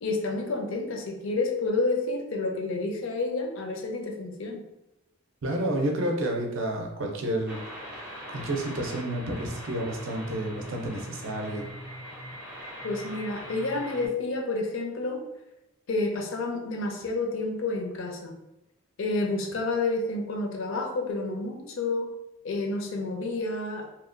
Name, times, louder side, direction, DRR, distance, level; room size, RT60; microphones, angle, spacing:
voice 1, 0.0-4.6 12.8-15.2 15.9-18.4 19.0-22.1 22.4-23.9, left 3 dB, 60° left, 3 dB, 0.4 m, -29 dB
voice 2, 5.4-7.6 7.9-11.7, right 1 dB, 60° right, 2 dB, 0.5 m, -30 dB
sound 1, 7.5-14.1, equal, 5° right, 0.4 m, -41 dB
2.8 x 2.1 x 2.5 m, 0.90 s
head